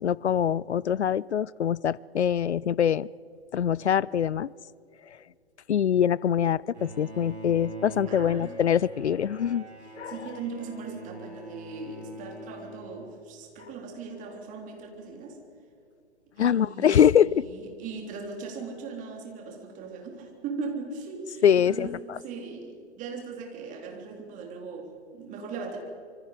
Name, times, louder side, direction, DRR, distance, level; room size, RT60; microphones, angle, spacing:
voice 1, 0.0-3.1 3.5-4.5 5.7-9.7 10.0-10.1 16.4-17.4 21.4-21.9, left 9 dB, 80° left, 24 dB, 0.5 m, -23 dB
Bowed string instrument, 6.7-13.5, right 1 dB, 80° right, 4.9 m, -43 dB
voice 2, 8.1-8.6 9.8-15.4 16.4-25.9, right 4 dB, 25° right, 2 dB, 3.6 m, -39 dB
26.0 x 24.5 x 5.1 m, 2.6 s
figure-of-eight pair, 125°, 33 cm